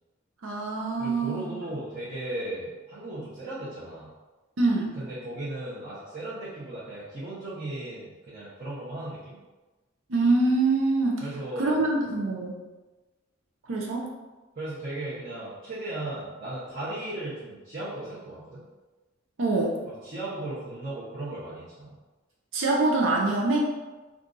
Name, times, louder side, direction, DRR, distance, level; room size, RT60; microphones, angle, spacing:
voice 1, 0.4-1.5 4.6-5.0 10.1-11.2 11.6-12.6 13.7-14.1 19.4-19.8 22.5-23.7, right 2 dB, 85° right, -1 dB, 0.6 m, -24 dB
voice 2, 1.0-4.1 5.0-9.4 11.2-11.8 14.6-18.6 19.9-22.0, right 1 dB, 45° right, -10 dB, 0.8 m, -36 dB
2.7 x 2.4 x 3.7 m, 1.2 s
head